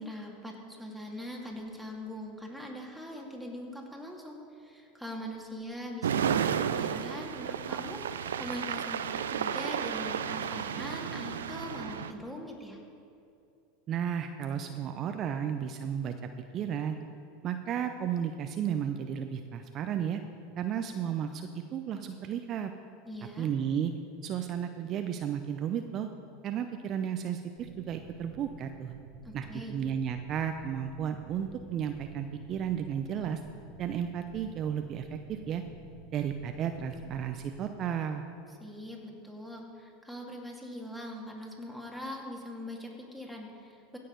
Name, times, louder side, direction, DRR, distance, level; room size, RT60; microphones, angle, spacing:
voice 1, 0.0-12.8 23.0-23.5 29.2-29.8 38.6-44.0, left 1 dB, ahead, -1 dB, 2.3 m, -42 dB
sound 1, 6.0-12.1, right 8 dB, 85° right, 0.5 m, -32 dB
voice 2, 13.9-16.1 16.5-17.0 17.4-20.2 20.6-22.7 23.4-23.9 24.2-26.1 26.4-28.9 29.3-33.4 33.8-35.6 36.1-38.2, right 8 dB, 45° right, 7 dB, 0.6 m, -33 dB
sound 2, 27.6-37.6, right 4 dB, 70° right, 1.1 m, -51 dB
16.0 x 6.7 x 5.3 m, 2.6 s
hypercardioid pair, 95°, 0 cm